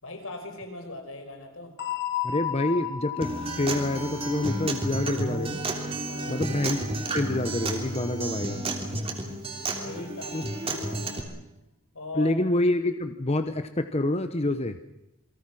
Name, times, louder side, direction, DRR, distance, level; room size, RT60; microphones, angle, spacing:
voice 1, 0.0-1.7 6.1-6.4 9.7-11.2 11.9-12.4, left 2 dB, 80° left, 5 dB, 5.2 m, -39 dB
sound 1, 1.8-6.4, left 10 dB, 55° left, 5.4 m, -35 dB
voice 2, 2.2-3.3 3.6-5.6 6.3-6.8 7.1-8.6 10.3-10.4 12.1-14.8, left 1 dB, 30° left, 9 dB, 0.9 m, -27 dB
Acoustic guitar, 3.2-11.2, right 2 dB, 30° right, 3.2 m, -31 dB
28.5 x 22.5 x 6.2 m, 0.89 s
head